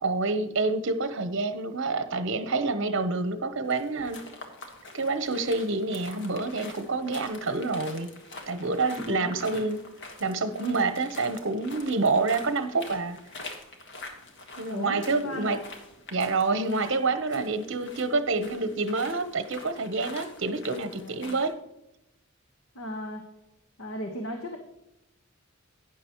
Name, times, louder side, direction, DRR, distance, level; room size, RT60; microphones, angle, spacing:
voice 1, 0.0-4.2 4.9-8.1 8.5-9.8 10.2-13.2 14.6-15.6 16.1-21.6, right 3 dB, 60° right, 10 dB, 0.9 m, -27 dB
sound 1, 3.6-21.5, left 2 dB, 60° left, 1.6 m, -45 dB
voice 2, 14.7-15.6 20.8-21.4 22.7-23.2 23.8-24.6, left 1 dB, 80° left, 4 dB, 1.3 m, -36 dB
12.0 x 9.8 x 3.0 m, 0.89 s
head